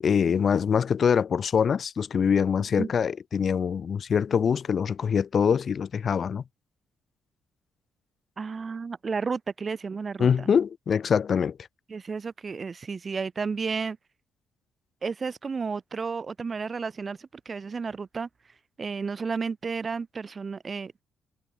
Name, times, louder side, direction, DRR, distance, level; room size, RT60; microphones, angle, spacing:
voice 1, 0.0-6.4 10.2-11.6, left 7 dB, 50° left, 0.5 m, -24 dB
voice 2, 8.4-10.5 11.9-14.0 15.0-18.3 18.8-21.0, right 5 dB, 35° right, 1.6 m, -32 dB
cardioid pair, 90°, 0 cm